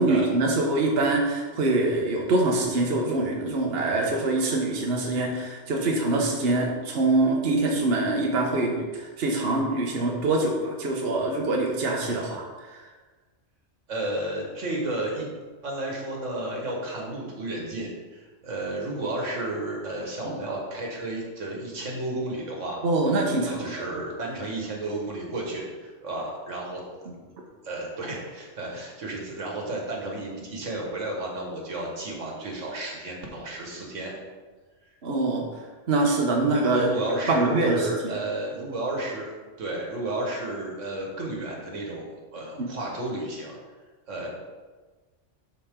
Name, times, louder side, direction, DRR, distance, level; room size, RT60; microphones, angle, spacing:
voice 1, 0.0-12.8 20.2-20.4 22.8-23.8 35.0-35.4 35.9-36.9 37.3-38.1 42.6-42.7, right 2 dB, 55° right, -1 dB, 1.2 m, -24 dB
voice 2, 13.9-15.3 15.6-22.8 23.4-26.8 27.6-34.1 36.7-39.3 39.6-43.6 44.1-44.3, right 2 dB, 85° right, -1 dB, 1.9 m, -32 dB
12.0 x 4.3 x 3.7 m, 1.3 s
omnidirectional pair, 1.3 m